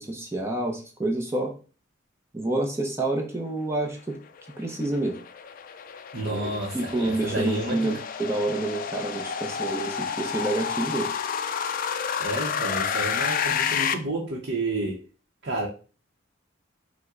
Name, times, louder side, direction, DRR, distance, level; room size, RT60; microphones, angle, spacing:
voice 1, 0.0-1.5 2.3-4.2 4.6-5.2 6.2-11.1, right 2 dB, 15° right, 0.6 m, -28 dB
sound 1, 4.4-13.9, left 7 dB, 45° left, 0.3 m, -30 dB
voice 2, 6.1-7.9 12.2-15.0 15.4-15.7, right 2 dB, 55° right, 0.8 m, -30 dB
5.5 x 2.1 x 3.7 m
head